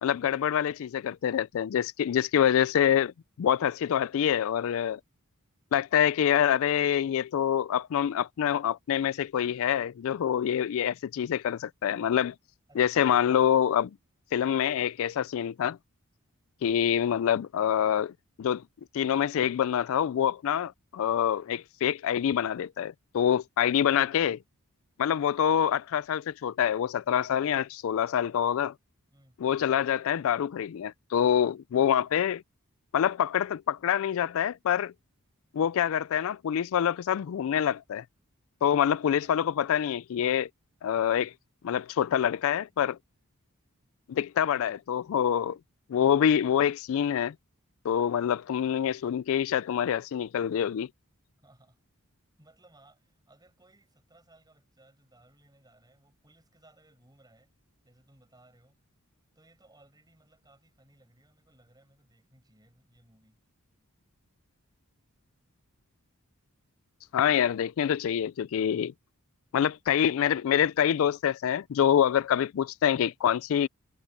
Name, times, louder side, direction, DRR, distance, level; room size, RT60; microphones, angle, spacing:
voice 1, 0.0-3.1 3.4-5.0 5.7-12.3 12.8-13.9 14.3-15.8 16.6-18.1 18.4-18.6 18.9-24.4 25.0-28.7 29.4-32.4 32.9-34.9 35.5-38.0 38.6-40.5 40.8-41.3 41.6-43.0 44.1-45.6 45.9-47.3 47.8-50.9 67.1-68.9 69.5-73.7, left 9 dB, 65° left, 0.3 m, -26 dB
voice 2, 12.7-13.2 29.1-29.4 39.2-39.3 51.4-51.8 52.4-57.5 57.8-58.8 59.3-63.4, right 2 dB, 20° right, 6.3 m, -61 dB
head